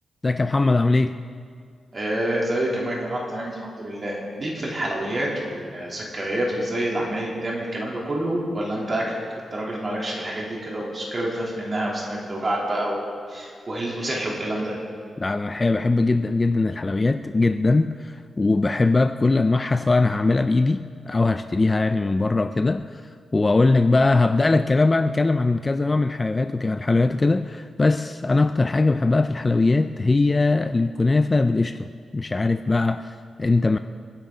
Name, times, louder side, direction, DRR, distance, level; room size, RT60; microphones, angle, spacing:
voice 1, 0.2-1.2 15.2-31.9 32.1-33.8, left 3 dB, 20° left, 9 dB, 0.3 m, -21 dB
voice 2, 1.9-9.1 9.5-14.7, right 1 dB, 30° right, -3 dB, 3.1 m, -27 dB
29.0 x 10.5 x 3.8 m, 2.2 s
wide cardioid pair, 160°, 0 cm